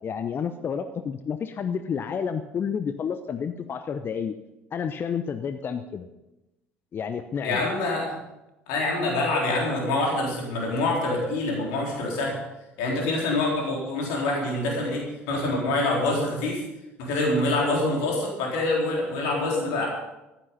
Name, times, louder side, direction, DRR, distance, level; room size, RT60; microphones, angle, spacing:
voice 1, 0.0-4.3 4.7-6.1 6.9-7.6, left 7 dB, 35° left, 10 dB, 0.8 m, -30 dB
voice 2, 7.4-8.2 8.7-12.4 12.8-16.6 17.0-19.9, left 2 dB, 60° left, -2 dB, 3.8 m, -26 dB
14.5 x 12.0 x 5.4 m, 0.97 s
figure-of-eight pair, 60°, 6 cm